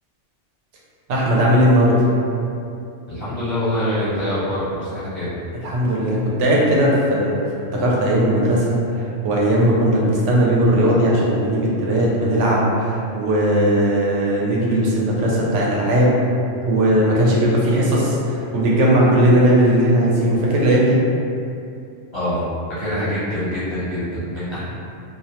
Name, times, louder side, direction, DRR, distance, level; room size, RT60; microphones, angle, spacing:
voice 1, 1.1-2.1 5.6-7.4 7.7-16.1 16.7-21.0, right 1 dB, 75° right, -4 dB, 0.9 m, -17 dB
voice 2, 3.1-5.3 22.1-22.4 22.8-24.6, equal, 30° left, -12 dB, 0.6 m, -24 dB
2.3 x 2.1 x 2.8 m, 2.6 s
omnidirectional pair, 1.3 m